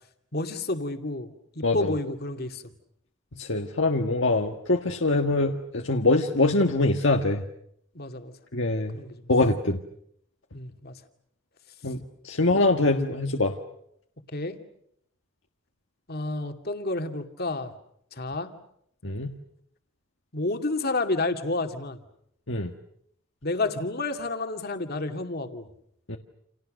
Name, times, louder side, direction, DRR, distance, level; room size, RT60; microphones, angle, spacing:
voice 1, 0.3-1.3 1.5-2.6 7.9-8.3 8.9-9.2 10.5-10.9 14.3-14.6 16.1-17.7 18.1-18.5 20.3-22.0 23.4-25.7, left 2 dB, 50° left, 6 dB, 2.4 m, -30 dB
voice 2, 1.6-1.9 3.3-7.4 8.5-9.0 9.3-9.8 11.8-13.6 19.0-19.3 22.5-22.7 26.1-26.2, left 2 dB, 70° left, 3 dB, 1.6 m, -24 dB
30.0 x 28.5 x 6.6 m, 0.73 s
head